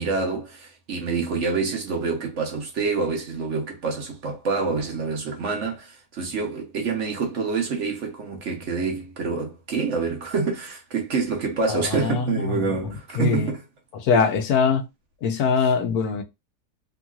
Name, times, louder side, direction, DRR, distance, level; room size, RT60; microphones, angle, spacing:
voice 1, 0.0-13.6, right 4 dB, 55° right, 1.0 m, -27 dB
voice 2, 11.7-13.5 13.9-14.8 15.2-16.2, left 5 dB, 75° left, 1.1 m, -23 dB
3.0 x 2.8 x 2.3 m
omnidirectional pair, 1.7 m